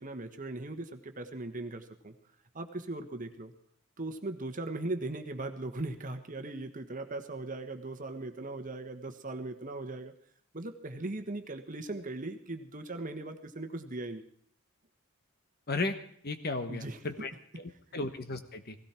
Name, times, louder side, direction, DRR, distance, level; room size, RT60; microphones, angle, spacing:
voice 1, 0.0-2.1 2.5-3.5 4.0-10.1 10.5-14.2 16.7-17.3 17.9-18.0, right 2 dB, 40° right, 7 dB, 1.4 m, -39 dB
voice 2, 16.2-17.3 17.6-18.8, left 3 dB, 50° left, 8 dB, 1.3 m, -35 dB
17.5 x 16.5 x 4.5 m, 0.62 s
head